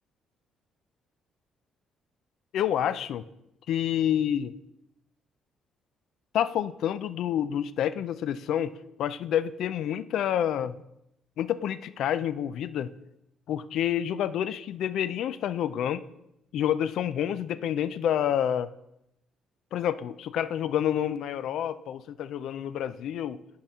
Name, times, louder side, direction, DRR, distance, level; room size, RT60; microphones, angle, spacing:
voice 1, 2.5-3.2 3.7-4.5 6.3-10.8 11.4-12.9 13.5-16.0 16.5-18.7 19.7-23.4, left 10 dB, 65° left, 15 dB, 0.3 m, -28 dB
10.5 x 4.3 x 3.6 m, 0.83 s
cardioid pair, 160°, 0 cm